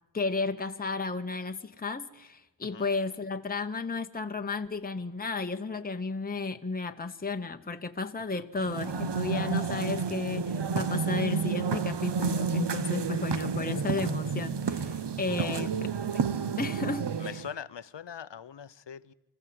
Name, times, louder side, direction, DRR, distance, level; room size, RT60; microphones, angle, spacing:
voice 1, 0.1-15.7 16.1-17.3, left 3 dB, 20° left, 1.0 m, -33 dB
sound 1, 8.6-17.5, right 5 dB, 55° right, 1.0 m, -30 dB
voice 2, 15.4-15.7 17.2-19.1, left 8 dB, 60° left, 0.9 m, -42 dB
25.0 x 14.5 x 7.7 m
wide cardioid pair, 65°, 49 cm